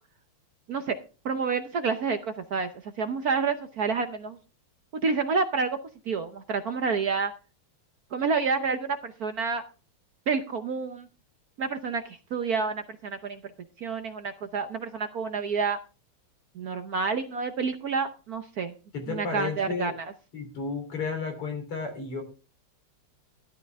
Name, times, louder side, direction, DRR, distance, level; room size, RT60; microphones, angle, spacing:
voice 1, 1.2-4.4 5.0-5.8 6.1-7.3 8.1-9.6 10.3-11.1 11.6-13.4 13.8-15.8 16.5-18.7 19.1-20.1, right 5 dB, 60° right, 8 dB, 1.0 m, -29 dB
voice 2, 18.9-19.9 20.3-22.2, left 4 dB, 80° left, 4 dB, 4.4 m, -32 dB
13.5 x 11.0 x 3.5 m, 0.34 s
omnidirectional pair, 2.4 m